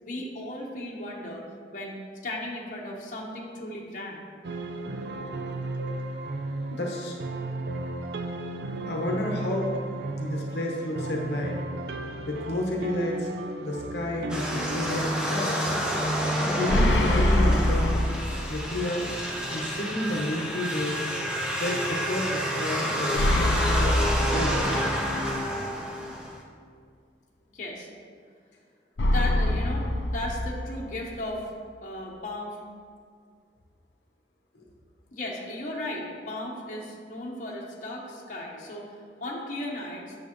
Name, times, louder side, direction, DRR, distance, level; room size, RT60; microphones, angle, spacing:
voice 1, 0.0-1.4 1.7-2.0 2.2-4.3 27.5-27.9 29.1-32.6 35.1-38.9 39.2-40.1, left 1 dB, 45° left, -2 dB, 1.0 m, -35 dB
sound 1, 4.4-17.6, right 2 dB, 70° right, 0.5 m, -35 dB
voice 2, 6.7-7.2 8.9-9.7 10.2-11.6 12.3-13.3 13.6-15.6 16.4-18.1 18.5-19.0 19.5-21.0 21.6-23.9 24.3-24.7 34.5-34.6, left 1 dB, 70° left, 0 dB, 0.9 m, -30 dB
sound 2, 14.3-26.4, equal, 5° right, 0.8 m, -29 dB
sound 3, 16.7-18.7 19.0-19.1 23.2-25.2 29.0-31.0, left 1 dB, 90° left, 0.5 m, -24 dB
8.5 x 6.8 x 3.0 m, 2.1 s
head